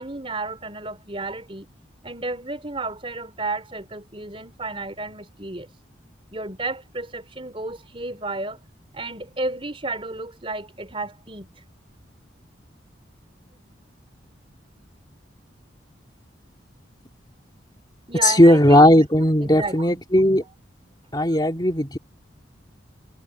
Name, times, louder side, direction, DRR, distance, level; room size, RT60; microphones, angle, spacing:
voice 1, 0.0-1.7 2.0-5.7 6.3-8.6 8.9-11.5 18.1-18.9 19.4-20.0, right 3 dB, 30° right, 4.2 m, -32 dB
voice 2, 18.2-20.4 21.1-22.0, left 1 dB, 20° left, 2.7 m, -16 dB
head